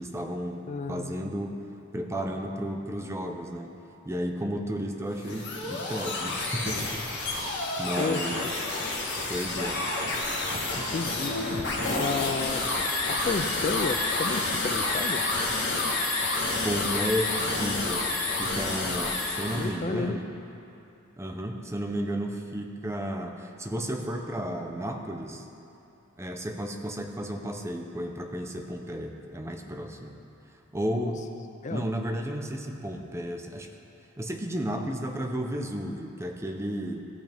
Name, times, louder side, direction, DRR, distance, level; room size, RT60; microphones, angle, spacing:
voice 1, 0.0-1.6 1.9-3.8 4.0-7.2 7.8-8.5 9.3-9.9 16.6-18.1 18.4-20.3 21.2-25.4 26.2-30.2 30.7-31.2 31.7-33.7 34.2-37.1, equal, 15° right, 3 dB, 0.6 m, -33 dB
voice 2, 0.7-1.3 8.0-8.5 10.8-11.4 11.9-12.6 13.1-15.2 19.5-20.2 31.0-31.1 31.6-31.8, left 4 dB, 35° left, 7 dB, 0.4 m, -32 dB
sound 1, 5.1-19.7, left 2 dB, 55° left, 1.9 m, -29 dB
15.0 x 8.5 x 3.5 m, 2.8 s
head